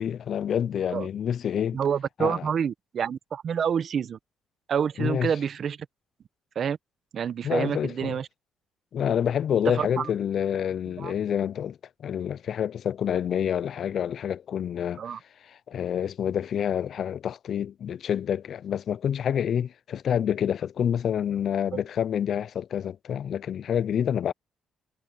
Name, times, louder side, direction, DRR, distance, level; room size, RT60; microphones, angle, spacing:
voice 1, 0.0-1.8 2.2-2.4 5.0-5.3 7.4-8.1 8.9-15.0 15.7-24.3, left 9 dB, 55° left, 0.3 m, -28 dB
voice 2, 1.7-4.2 4.7-5.8 6.5-6.8 7.1-8.3 9.7-10.1 11.0-11.1 15.0-15.2 21.7-21.8, right 7 dB, 50° right, 0.8 m, -28 dB
cardioid pair, 120°, 0 cm